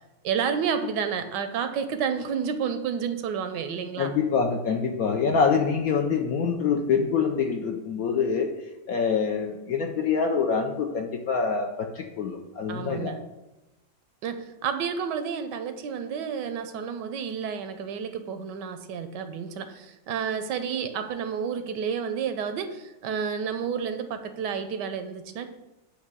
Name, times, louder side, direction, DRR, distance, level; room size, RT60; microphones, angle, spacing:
voice 1, 0.2-4.1 12.7-13.2 14.2-25.5, right 7 dB, 75° right, 9 dB, 1.2 m, -30 dB
voice 2, 4.0-8.5 8.9-13.1, left 5 dB, 65° left, 3 dB, 0.9 m, -25 dB
8.2 x 2.9 x 6.1 m, 0.99 s
omnidirectional pair, 2.0 m